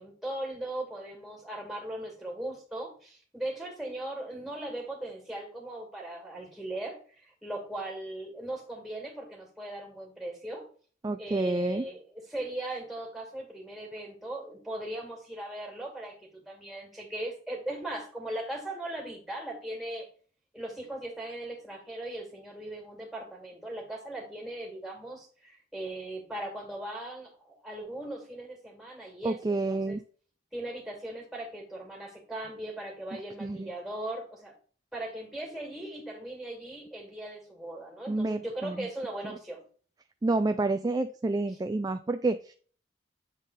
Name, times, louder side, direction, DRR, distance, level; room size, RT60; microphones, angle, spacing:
voice 1, 0.0-7.0 7.4-10.7 11.2-20.1 20.5-30.0 30.5-34.5 34.9-39.6, right 1 dB, ahead, 0 dB, 2.3 m, -38 dB
voice 2, 11.0-11.8 29.2-30.0 33.4-33.7 38.1-38.9 40.2-42.5, right 2 dB, 20° right, 9 dB, 0.3 m, -29 dB
8.1 x 3.8 x 4.0 m, 0.42 s
head